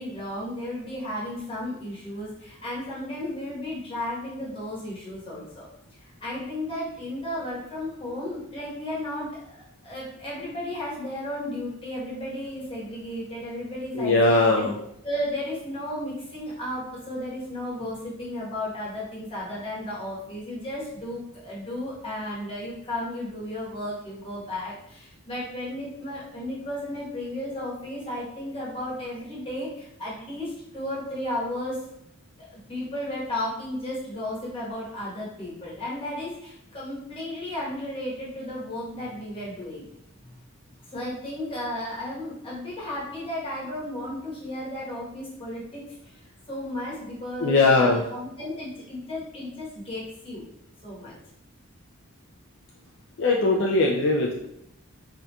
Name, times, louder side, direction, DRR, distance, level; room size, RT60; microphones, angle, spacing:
voice 1, 0.0-5.7 6.0-14.7 15.0-31.8 32.5-39.9 40.9-46.2 46.5-50.4 50.8-51.1, left 1 dB, 25° left, -7 dB, 1.0 m, -34 dB
voice 2, 14.0-14.7 47.4-48.0 53.2-54.3, left 2 dB, 55° left, -1 dB, 0.3 m, -20 dB
3.6 x 2.7 x 2.2 m, 0.78 s
head